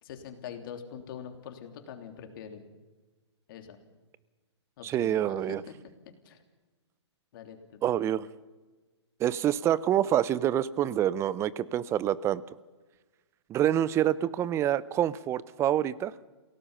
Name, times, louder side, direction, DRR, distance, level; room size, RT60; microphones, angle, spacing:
voice 1, 0.0-2.6 3.5-3.8 4.8-5.7 6.2-6.4 7.3-7.6, left 8 dB, 50° left, 5 dB, 3.3 m, -44 dB
voice 2, 4.8-5.6 7.8-8.3 9.2-12.4 13.5-16.1, right 11 dB, 20° right, 19 dB, 0.6 m, -27 dB
28.0 x 17.5 x 5.6 m, 1.3 s
hypercardioid pair, 135°, 15 cm